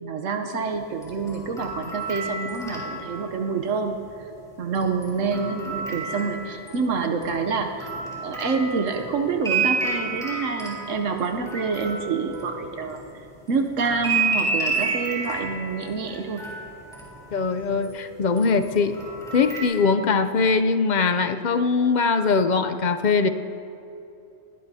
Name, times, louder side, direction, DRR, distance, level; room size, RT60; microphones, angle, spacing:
voice 1, 0.0-4.3 4.6-7.9 8.2-13.0 13.5-16.4, right 4 dB, 80° right, 4 dB, 1.2 m, -27 dB
sound 1, 0.9-3.5 4.7-6.9 7.2-13.1 13.8-17.9 18.4-19.6, right 4 dB, 5° left, 3.6 m, -30 dB
voice 2, 17.3-19.0 19.3-23.3, left 4 dB, 50° left, 8 dB, 0.5 m, -21 dB
20.5 x 17.5 x 2.8 m, 2.8 s
omnidirectional pair, 1.3 m